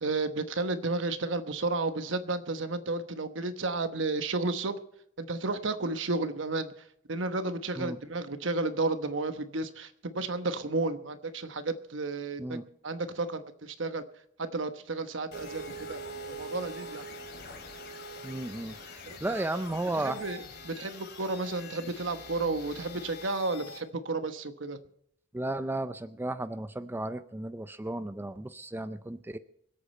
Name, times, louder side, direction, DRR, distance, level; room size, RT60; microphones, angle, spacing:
voice 1, 0.0-4.8 5.2-12.6 12.8-14.0 14.4-15.6 15.9-16.0 16.3-17.0 19.1-19.6 20.0-24.8, right 3 dB, 70° right, 9 dB, 1.1 m, -32 dB
sound 1, 15.3-23.8, equal, 60° left, 3.1 m, -44 dB
voice 2, 18.2-18.7 19.2-20.2 25.3-29.4, right 2 dB, 10° right, 12 dB, 0.4 m, -34 dB
25.0 x 8.5 x 4.3 m, 0.72 s
head